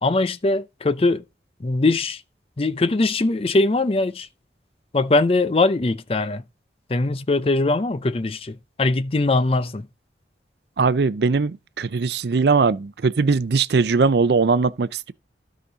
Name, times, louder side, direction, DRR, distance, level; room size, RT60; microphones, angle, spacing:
voice 1, 0.0-1.2 1.6-2.2 2.6-4.3 4.9-6.4 6.9-9.9, left 2 dB, 35° left, 0.5 m, -21 dB
voice 2, 10.8-15.1, right 4 dB, 70° right, 0.5 m, -20 dB
12.5 x 5.1 x 4.0 m
head